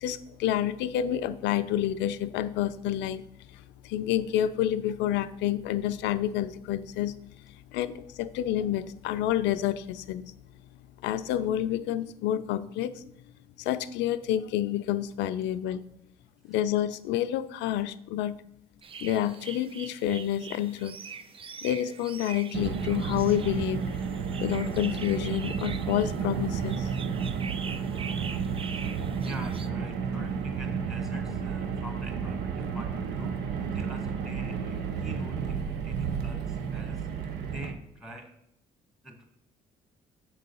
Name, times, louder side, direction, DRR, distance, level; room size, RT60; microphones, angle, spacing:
voice 1, 0.0-3.2 3.8-7.2 7.7-10.2 11.0-12.9 13.6-15.9 16.5-18.4 19.0-21.0 21.6-23.8 24.4-26.9, left 11 dB, 70° left, 13 dB, 0.4 m, -29 dB
sound 1, 18.8-29.7, right 6 dB, 30° right, 0.4 m, -44 dB
Car, 22.5-37.7, right 6 dB, 70° right, 0.8 m, -32 dB
voice 2, 28.9-33.4 33.7-37.1 37.5-38.3 39.0-39.2, equal, ahead, 3 dB, 1.8 m, -44 dB
6.9 x 3.8 x 5.3 m, 0.78 s
hypercardioid pair, 55°, 18 cm